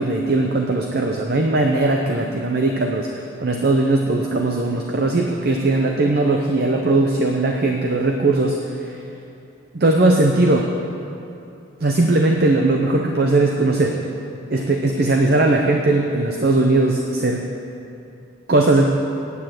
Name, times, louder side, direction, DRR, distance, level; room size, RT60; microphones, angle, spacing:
voice 1, 0.0-9.0 9.7-10.7 11.8-14.0 14.5-17.4 18.5-18.8, right 2 dB, 50° right, 2 dB, 0.7 m, -19 dB
9.7 x 8.7 x 7.7 m, 2.7 s
head